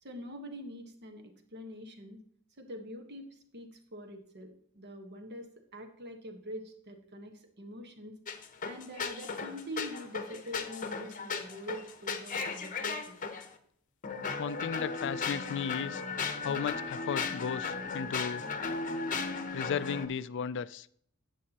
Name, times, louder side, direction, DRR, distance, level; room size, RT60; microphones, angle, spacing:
voice 1, 0.0-2.2 2.6-13.2, equal, 50° right, 1.3 m, -45 dB
sound 1, 8.3-13.5 14.0-20.1, left 4 dB, 35° left, 0.8 m, -36 dB
voice 2, 14.4-16.0 16.4-18.4 19.5-20.9, left 7 dB, 55° left, 0.4 m, -35 dB
11.0 x 8.4 x 2.9 m
head